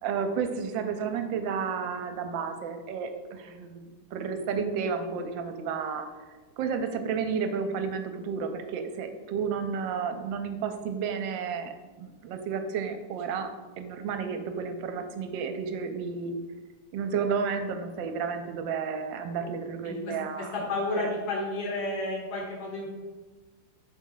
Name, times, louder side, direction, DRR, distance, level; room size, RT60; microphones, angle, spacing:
voice 1, 0.0-3.8 4.1-6.1 6.6-11.7 12.0-13.5 13.8-16.3 16.9-20.5 21.0-21.1, right 6 dB, 80° right, 7 dB, 1.3 m, -31 dB
voice 2, 19.8-22.9, left 2 dB, 55° left, -3 dB, 1.9 m, -32 dB
6.1 x 4.1 x 3.8 m, 1.3 s
omnidirectional pair, 2.1 m